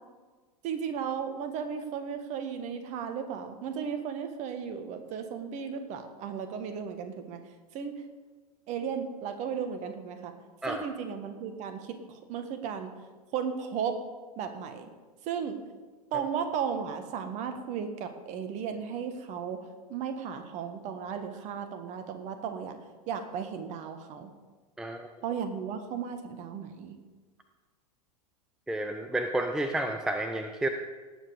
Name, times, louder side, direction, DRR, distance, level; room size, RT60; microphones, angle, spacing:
voice 1, 0.6-7.4 7.7-8.0 8.7-10.3 10.7-12.0 12.3-12.9 13.3-14.0 14.4-14.9 15.2-15.6 16.1-19.6 19.9-22.8 23.1-24.3 25.2-27.0, right 7 dB, 35° right, 8 dB, 1.5 m, -35 dB
voice 2, 24.8-25.1 28.7-30.7, right 1 dB, 5° right, 6 dB, 0.6 m, -31 dB
18.0 x 7.5 x 4.9 m, 1.4 s
figure-of-eight pair, 90°, 20 cm